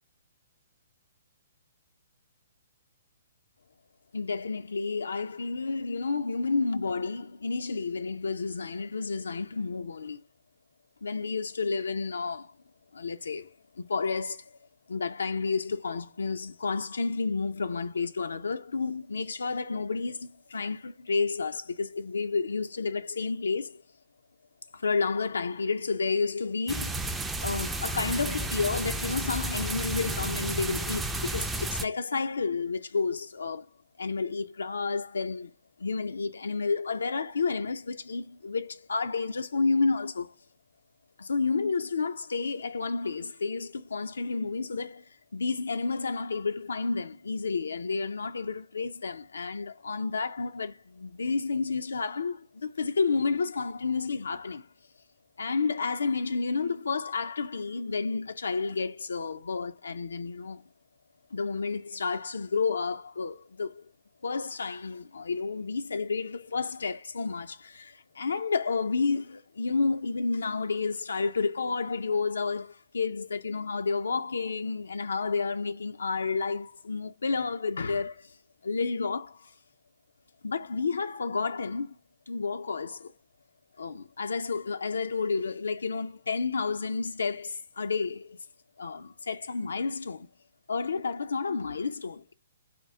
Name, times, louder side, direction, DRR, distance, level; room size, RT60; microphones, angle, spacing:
voice 1, 4.1-10.2 11.0-12.5 12.9-14.6 14.9-23.8 24.7-27.1 27.4-33.7 34.0-35.5 35.8-40.3 41.2-54.7 55.4-60.6 61.3-63.9 64.2-78.4 78.6-79.5 80.4-82.0 82.3-83.1 83.8-88.4 88.8-90.3 90.7-92.3, left 4 dB, 90° left, 0.3 m, -31 dB
sound 1, 26.7-31.8, right 2 dB, 5° right, 0.3 m, -32 dB
4.3 x 2.4 x 3.5 m
hypercardioid pair, 145°, 0 cm